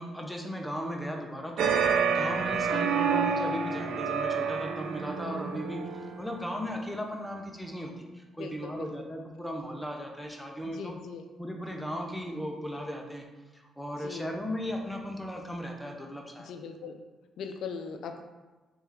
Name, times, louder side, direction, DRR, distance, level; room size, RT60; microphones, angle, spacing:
voice 1, 0.0-11.0 11.4-13.3 13.5-16.5, equal, 5° left, 1 dB, 0.6 m, -37 dB
sound 1, 1.6-6.3, right 6 dB, 80° right, 0.3 m, -28 dB
voice 2, 8.4-8.9 10.6-11.2 14.0-14.3 16.4-17.0 17.4-18.2, left 6 dB, 75° left, 5 dB, 0.3 m, -40 dB
3.1 x 3.1 x 3.6 m, 1.2 s
cardioid pair, 90°, 0 cm